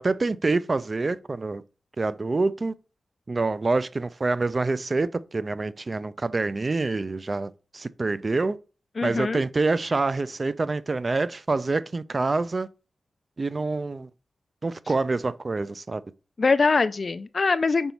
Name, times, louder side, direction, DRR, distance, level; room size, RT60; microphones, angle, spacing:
voice 1, 0.0-1.6 2.0-2.7 3.3-8.6 9.0-12.7 13.4-14.1 14.6-16.0, right 3 dB, 40° right, 0.4 m, -26 dB
voice 2, 9.0-9.4 16.4-17.9, left 4 dB, 50° left, 0.3 m, -23 dB
5.4 x 4.0 x 4.5 m
wide cardioid pair, 80°, 0 cm